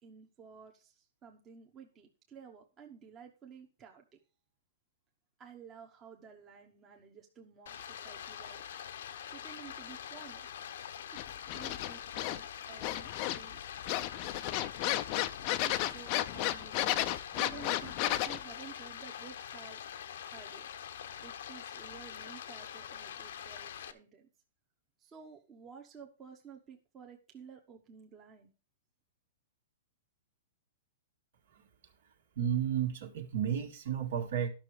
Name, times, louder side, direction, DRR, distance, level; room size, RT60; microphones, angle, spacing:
voice 1, 0.0-4.2 5.4-8.6 9.3-10.5 11.1-11.2 11.5-13.6 14.0-14.2 15.6-19.8 20.2-20.7 21.2-24.3 25.0-28.5, right 7 dB, 20° right, 1.1 m, -53 dB
Stream, 7.7-23.9, left 9 dB, 65° left, 0.9 m, -45 dB
sound 1, 11.2-12.4 12.8-13.5 13.8-18.4, left 15 dB, 35° left, 0.5 m, -33 dB
voice 2, 32.4-34.5, right 9 dB, 60° right, 1.9 m, -32 dB
12.0 x 6.1 x 4.8 m
hypercardioid pair, 160°, 0 cm